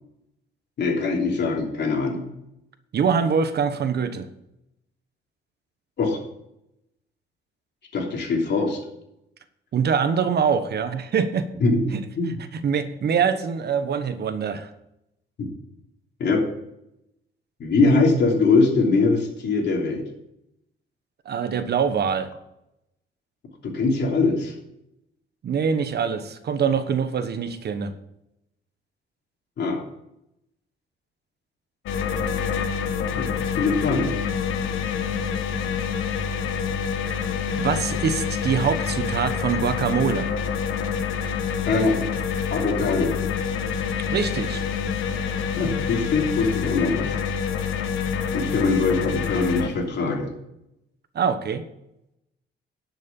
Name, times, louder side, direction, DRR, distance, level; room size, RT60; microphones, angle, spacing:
voice 1, 0.8-2.2 6.0-6.2 7.9-8.8 11.6-11.8 12.2-12.4 15.4-15.5 16.2-16.4 17.6-20.0 23.6-24.5 29.6-29.8 33.1-34.1 41.6-42.0 42.5-43.2 45.6-47.1 48.3-50.3, left 3 dB, 60° left, 1 dB, 3.0 m, -22 dB
voice 2, 2.9-4.3 9.7-11.5 11.9-12.0 12.5-14.7 21.2-22.3 25.4-27.9 37.6-40.3 44.1-44.6 51.1-51.6, right 6 dB, 55° right, 10 dB, 1.2 m, -24 dB
sound 1, 31.9-49.7, left 6 dB, 80° left, 1.2 m, -27 dB
11.0 x 6.4 x 7.1 m, 0.82 s
cardioid pair, 90°, 20 cm